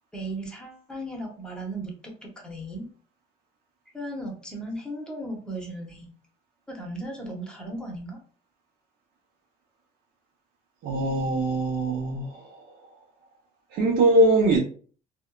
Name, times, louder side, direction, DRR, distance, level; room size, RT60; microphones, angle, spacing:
voice 1, 0.1-2.9 3.9-6.1 6.7-8.2, right 1 dB, 5° left, 0.8 m, -36 dB
voice 2, 10.8-12.8 13.7-14.6, right 1 dB, 70° right, 0.7 m, -22 dB
2.7 x 2.2 x 2.3 m
cardioid pair, 110°, 17 cm